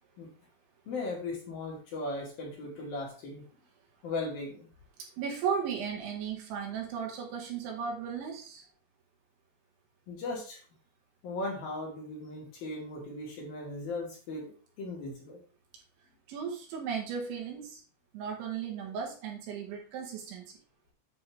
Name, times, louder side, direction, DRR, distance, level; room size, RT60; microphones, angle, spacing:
voice 1, 0.9-3.4 4.0-4.7 10.1-10.6 11.2-15.4, left 2 dB, 55° left, -2 dB, 3.3 m, -37 dB
voice 2, 5.2-8.6 16.3-17.8 18.1-20.4, right 7 dB, 70° right, 1 dB, 4.1 m, -35 dB
9.4 x 7.6 x 3.5 m, 0.40 s
omnidirectional pair, 5.9 m